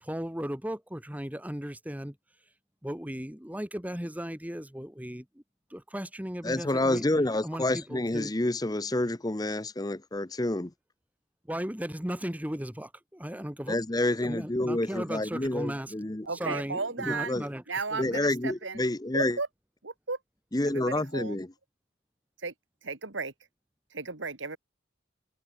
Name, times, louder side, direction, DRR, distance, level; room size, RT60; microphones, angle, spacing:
voice 1, 0.0-2.2 2.8-5.4 5.7-7.1 7.4-8.3 11.5-15.9 16.3-17.6 17.9-18.2, equal, 10° right, 1.6 m, -36 dB
voice 2, 6.4-10.7 13.7-16.6 17.1-17.5 18.0-19.4 20.5-21.5, left 1 dB, 20° left, 0.8 m, -29 dB
voice 3, 16.3-17.4 17.7-18.8 19.1-19.5 19.8-20.2 20.7-21.4 22.4-22.5 22.8-23.3 23.9-24.6, right 4 dB, 80° right, 2.6 m, -34 dB
head